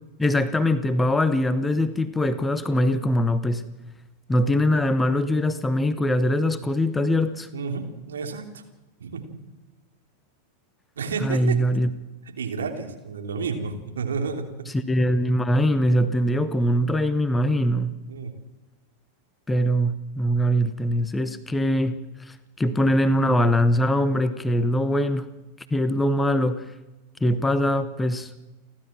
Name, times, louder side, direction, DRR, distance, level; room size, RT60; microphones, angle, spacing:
voice 1, 0.2-3.6 4.3-7.5 11.2-11.9 14.7-17.9 19.5-22.0 22.3-25.3 25.7-26.6 27.2-28.3, equal, 10° left, 13 dB, 1.1 m, -22 dB
voice 2, 7.5-8.6 9.0-9.4 11.0-11.6 12.2-14.7 18.1-18.3, right 5 dB, 65° right, 4 dB, 3.2 m, -31 dB
30.0 x 12.5 x 7.5 m, 1.1 s
figure-of-eight pair, 90°, 0 cm